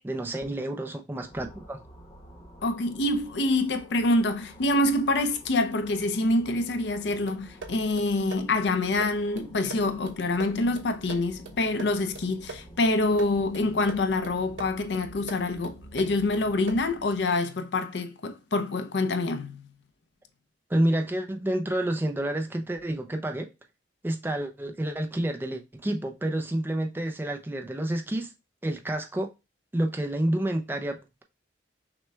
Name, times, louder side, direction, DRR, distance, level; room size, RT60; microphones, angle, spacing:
voice 1, 0.0-1.8 20.7-23.5 24.0-28.3 28.6-29.3 29.7-31.2, right 1 dB, 10° right, 0.4 m, -29 dB
sound 1, 1.2-17.4, right 1 dB, 30° left, 0.9 m, -50 dB
voice 2, 2.6-19.6, left 2 dB, 65° left, 0.5 m, -26 dB
sound 2, 7.3-17.0, right 3 dB, 80° right, 0.8 m, -44 dB
5.9 x 2.2 x 3.3 m
head